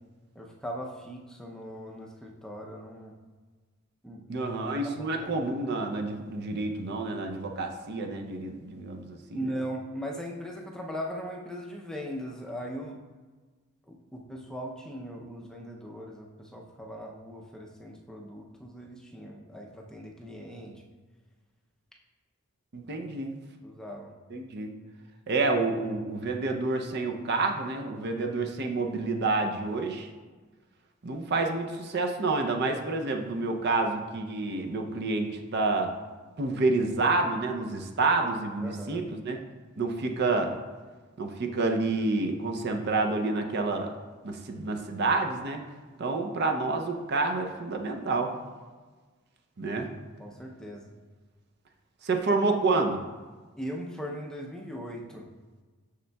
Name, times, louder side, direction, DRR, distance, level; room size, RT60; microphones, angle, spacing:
voice 1, 0.4-3.1 4.0-4.5 4.8-5.4 9.3-13.0 13.9-20.8 23.6-24.1 38.6-39.0 50.2-50.9 53.6-55.2, equal, 5° left, -1 dB, 0.5 m, -39 dB
voice 2, 4.3-9.5 22.7-23.3 24.3-24.7 25.3-30.1 31.0-35.9 36.4-39.4 39.8-40.5 41.2-43.9 44.2-45.6 46.0-48.3 49.6-49.9 52.0-53.0, right 3 dB, 50° right, 3 dB, 0.5 m, -28 dB
6.6 x 6.4 x 2.2 m, 1.4 s
head